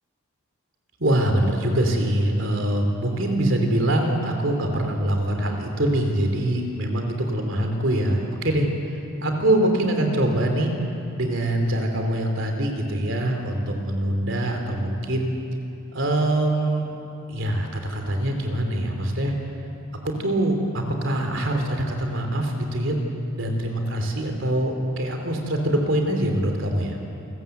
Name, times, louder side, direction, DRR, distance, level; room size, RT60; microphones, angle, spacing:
voice 1, 1.0-10.7 11.2-15.3 15.9-16.8 17.3-19.3 20.0-22.9 23.3-27.0, right 1 dB, 65° right, 3 dB, 3.1 m, -24 dB
28.5 x 14.0 x 8.0 m, 2.7 s
head